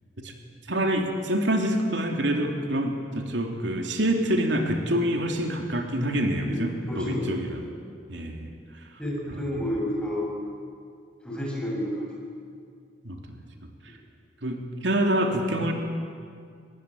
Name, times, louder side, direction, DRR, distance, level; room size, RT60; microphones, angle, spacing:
voice 1, 0.7-7.6 8.1-9.0 9.3-9.4 13.0-13.4 13.8-14.0 14.4-15.7, right 1 dB, 90° right, 3 dB, 3.1 m, -26 dB
voice 2, 6.5-7.2 9.0-10.3 11.2-12.1, equal, 5° left, -3 dB, 7.1 m, -30 dB
24.5 x 20.0 x 9.9 m, 2.2 s
head